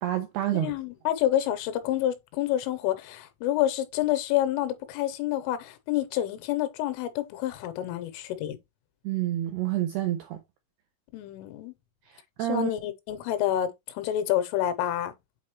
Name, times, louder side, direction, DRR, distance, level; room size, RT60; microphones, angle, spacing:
voice 1, 0.0-0.7 9.0-10.4 12.1-12.7, right 13 dB, 85° right, 2.3 m, -28 dB
voice 2, 0.5-8.6 11.1-11.7 12.4-15.1, left 12 dB, 85° left, 3.4 m, -28 dB
8.2 x 4.3 x 3.1 m
omnidirectional pair, 5.6 m